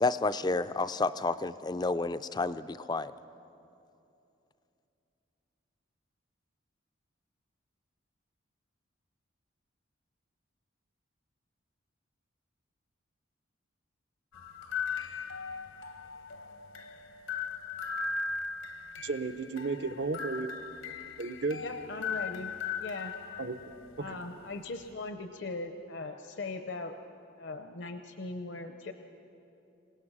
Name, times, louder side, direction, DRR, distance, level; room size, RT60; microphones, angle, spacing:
voice 1, 0.0-3.1, left 3 dB, 20° left, 13 dB, 0.4 m, -30 dB
sound 1, 14.3-25.1, left 5 dB, 80° left, 1.0 m, -39 dB
voice 2, 19.0-20.5 21.2-21.6 23.4-23.6, right 3 dB, 60° right, 10 dB, 0.8 m, -33 dB
voice 3, 21.6-23.1 24.0-27.0 27.4-28.9, left 3 dB, 60° left, 7 dB, 0.7 m, -39 dB
26.0 x 17.5 x 6.2 m, 2.8 s
head